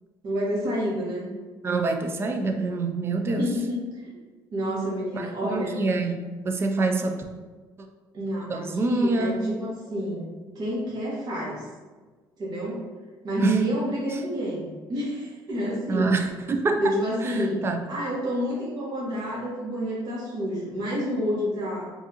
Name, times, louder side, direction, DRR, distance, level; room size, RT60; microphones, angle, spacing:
voice 1, 0.2-1.3 3.3-4.1 4.5-5.7 6.8-7.0 8.1-9.5 9.9-11.7 12.4-12.8 13.2-16.1 16.8-17.6 17.9-21.9, equal, 50° right, -6 dB, 1.5 m, -29 dB
voice 2, 1.6-3.6 5.1-7.2 8.5-9.4 13.4-13.6 14.1-14.2 15.9-16.9 17.2-17.8, right 3 dB, 30° right, 5 dB, 0.4 m, -26 dB
4.6 x 2.6 x 2.9 m, 1.4 s
cardioid pair, 135°, 8 cm